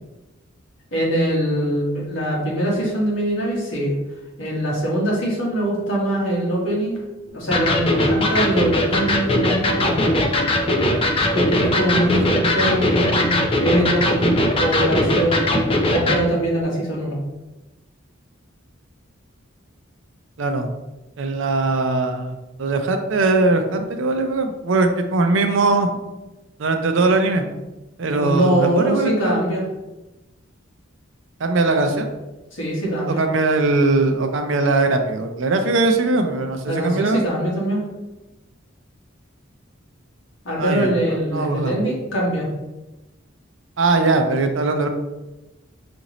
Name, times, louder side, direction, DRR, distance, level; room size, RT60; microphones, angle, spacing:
voice 1, 0.9-3.9 4.4-7.0 7.3-10.2 11.3-15.6 15.9-17.2 28.1-29.6 32.5-33.2 36.6-37.8 40.4-42.5, right 1 dB, 70° left, -4 dB, 1.3 m, -22 dB
Electric guitar, 7.5-16.2, left 1 dB, 30° left, 0.4 m, -20 dB
voice 2, 21.2-26.0 26.6-27.4 28.0-29.4 31.4-32.1 33.1-37.2 40.6-40.9 41.3-41.8 43.8-44.9, right 3 dB, 70° right, 6 dB, 0.5 m, -20 dB
5.0 x 2.6 x 2.9 m, 1.1 s
head